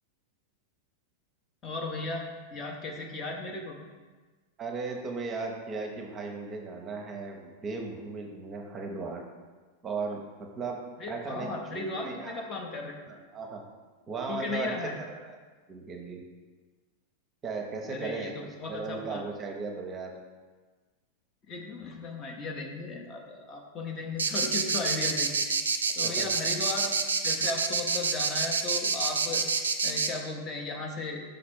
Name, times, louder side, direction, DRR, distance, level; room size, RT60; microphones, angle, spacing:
voice 1, 1.6-3.8 11.0-13.0 14.3-14.9 17.9-18.3 18.6-19.2 21.5-25.3 26.0-26.9 27.2-29.4 29.8-31.2, left 3 dB, 25° left, 1 dB, 0.8 m, -36 dB
voice 2, 4.6-9.2 9.8-10.8 11.1-12.4 13.1-13.6 14.1-15.4 15.7-16.2 17.4-18.3 18.7-20.1 26.0-26.3, right 4 dB, 25° right, 2 dB, 0.8 m, -36 dB
sound 1, 24.2-30.1, right 4 dB, 70° right, 0.4 m, -27 dB
5.2 x 4.2 x 4.4 m, 1.4 s
figure-of-eight pair, 90°, 0 cm